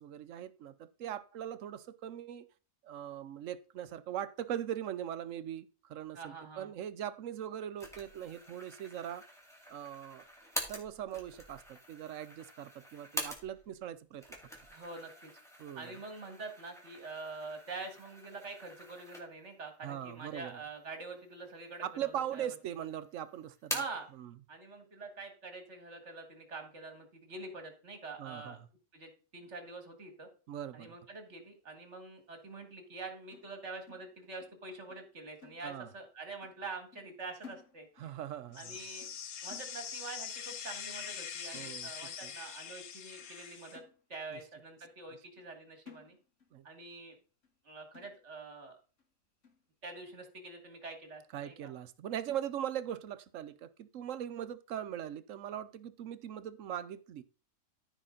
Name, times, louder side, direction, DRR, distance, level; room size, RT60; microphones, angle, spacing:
voice 1, 0.0-2.5 2.8-9.2 9.7-10.2 10.7-14.2 15.6-16.0 19.8-20.6 21.8-23.8 24.2-24.3 28.2-28.6 30.5-30.9 35.6-35.9 38.0-38.8 41.5-41.9 42.2-42.3 44.3-44.4 46.5-46.6 51.3-57.2, right 10 dB, 70° right, 1.0 m, -40 dB
voice 2, 6.1-6.7 14.7-15.3 15.8-22.6 23.7-24.1 24.5-28.6 28.9-30.3 30.7-38.1 38.6-39.1 39.4-43.8 44.1-46.2 46.6-47.2 47.6-48.8 49.8-51.7, right 3 dB, 55° right, 2.2 m, -46 dB
sound 1, 7.8-13.8 14.1-19.6 20.0-20.1 20.9-21.6 21.9-22.7 23.0-24.1, equal, ahead, 2.1 m, -45 dB
sound 2, 33.3-34.6 34.9-35.1 35.4-36.1 36.4-36.7 36.9-38.2 38.5-38.7 39.0-39.3 39.5-40.2 40.5-40.8 41.1-41.2 41.5-42.2 42.7-42.8 43.2-43.3 43.7-44.4 44.8-44.9 45.4-45.5 45.9-46.6 46.9-47.0 47.4-47.6 47.9-48.5 49.0-49.1 49.4-49.7, left 6 dB, 60° left, 2.1 m, -57 dB
sound 3, 38.5-43.8, left 7 dB, 90° left, 1.4 m, -43 dB
14.0 x 5.0 x 3.9 m
omnidirectional pair, 1.4 m